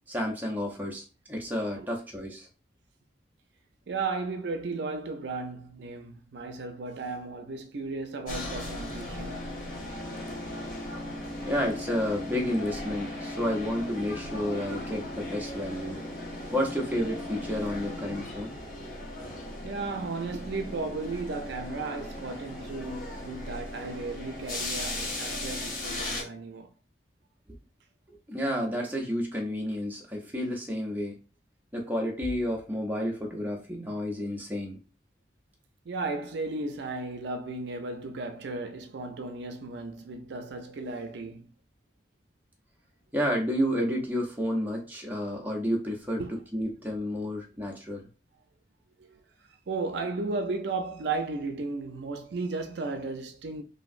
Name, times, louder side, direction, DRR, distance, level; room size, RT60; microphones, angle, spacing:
voice 1, 0.1-2.5 11.4-16.0 16.5-18.5 28.3-31.2 31.7-34.8 43.1-46.2 46.5-48.1, equal, 10° right, 0.5 m, -30 dB
voice 2, 3.9-9.4 19.6-26.7 35.9-41.5 46.2-46.3 49.1-49.2 49.7-53.6, right 3 dB, 65° right, 0.4 m, -35 dB
sound 1, 8.3-26.2, left 1 dB, 45° left, 0.8 m, -37 dB
3.0 x 2.5 x 2.4 m
head